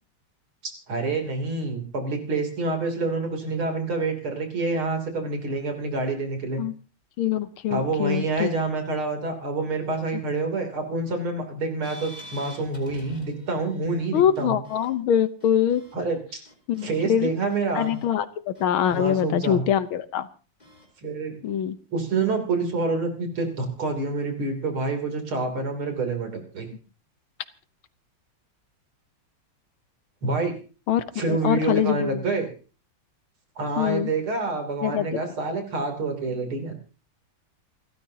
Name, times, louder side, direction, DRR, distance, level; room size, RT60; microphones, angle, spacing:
voice 1, 0.9-6.6 7.7-14.6 15.9-16.2 16.8-18.0 18.9-19.6 21.0-21.4 21.9-26.7 30.2-30.5 31.2-32.5 33.6-36.8, right 3 dB, 85° right, 4 dB, 4.1 m, -27 dB
voice 2, 7.2-8.5 14.1-15.8 16.7-17.3 17.7-20.3 21.4-21.8 30.9-32.2 33.8-34.1 34.8-35.2, left 9 dB, 80° left, 13 dB, 1.8 m, -24 dB
sound 1, 11.8-14.0 14.3-14.9 15.4-16.0 16.4-17.0 17.5-18.1 18.5-19.1 20.6-20.9, equal, 20° left, 3.8 m, -47 dB
28.5 x 13.5 x 2.9 m, 0.36 s
omnidirectional pair, 2.3 m